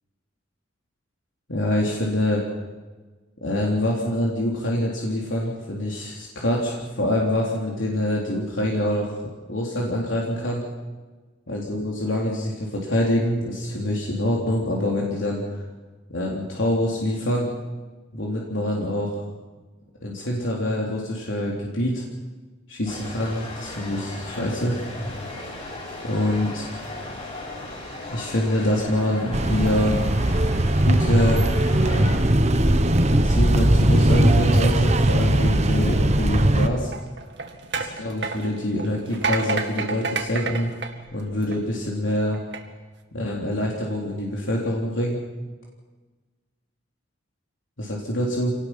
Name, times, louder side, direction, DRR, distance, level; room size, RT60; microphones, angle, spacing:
voice 1, 1.5-2.4 3.4-9.1 9.5-10.6 11.5-15.6 16.1-17.5 18.1-19.1 20.0-22.0 22.7-24.8 26.0-26.7 28.1-30.0 30.8-31.5 31.8-32.5 33.1-36.9 38.0-40.7 41.1-42.4 43.1-45.2 47.8-48.5, left 1 dB, 80° left, -2 dB, 3.4 m, -25 dB
sound 1, 22.9-32.2, left 2 dB, 35° left, 7.5 m, -36 dB
sound 2, 29.3-36.7, right 1 dB, 35° right, 1.1 m, -19 dB
sound 3, 36.8-41.8 42.3-42.6, right 4 dB, 60° right, 2.0 m, -30 dB
27.0 x 18.5 x 5.9 m, 1.3 s
head